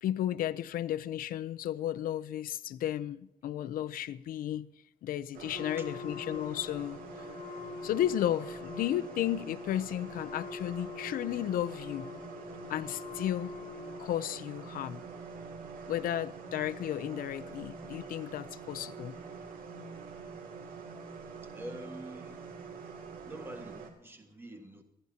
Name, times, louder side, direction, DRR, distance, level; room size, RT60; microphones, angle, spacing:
voice 1, 0.0-4.7 5.0-7.0 7.8-12.1 12.7-13.5 14.0-15.0 15.9-19.2, left 12 dB, 80° left, 0.5 m, -33 dB
sound 1, 5.3-23.9, right 5 dB, 80° right, 2.5 m, -46 dB
Wind instrument woodwind instrument, 5.5-14.3, left 6 dB, 60° left, 0.9 m, -45 dB
voice 2, 5.5-5.9 21.4-22.6 23.2-24.8, right 1 dB, 15° right, 1.6 m, -46 dB
27.0 x 10.5 x 2.8 m
cardioid pair, 155°, 15 cm